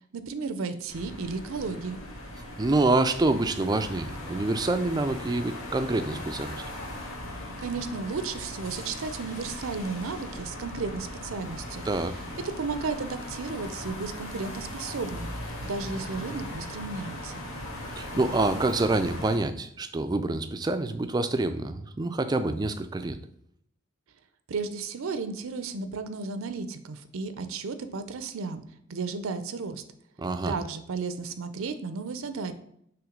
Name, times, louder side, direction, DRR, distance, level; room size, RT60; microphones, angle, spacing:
voice 1, 0.1-2.0 7.6-11.8 12.4-17.4 24.5-28.6 28.9-29.8 30.5-32.5, right 4 dB, 75° right, 10 dB, 0.5 m, -34 dB
sound 1, 0.9-19.4, left 1 dB, 85° left, 1.5 m, -39 dB
voice 2, 2.6-6.6 11.9-12.2 18.0-23.2 30.2-30.6, right 2 dB, 20° right, 10 dB, 0.3 m, -26 dB
6.0 x 3.1 x 5.0 m, 0.70 s
head